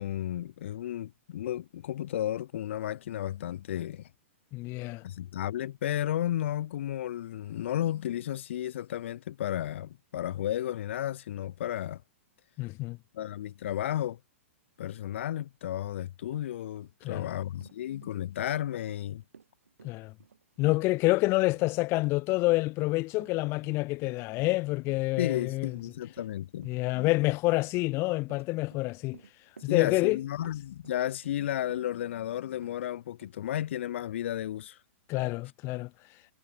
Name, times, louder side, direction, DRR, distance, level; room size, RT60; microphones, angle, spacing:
voice 1, 0.0-4.1 5.0-12.0 13.1-14.2 14.8-19.2 25.2-26.7 29.7-34.8, left 12 dB, 60° left, 1.7 m, -33 dB
voice 2, 4.5-5.0 12.6-13.0 17.0-17.3 19.8-20.1 20.6-25.7 26.6-29.2 29.6-30.2 35.1-35.9, left 22 dB, 35° left, 1.3 m, -28 dB
Run, 15.9-16.0 16.3-32.2 32.6-32.8 33.2-33.3, right 6 dB, 80° right, 6.4 m, -56 dB
hypercardioid pair, 115°, 7 cm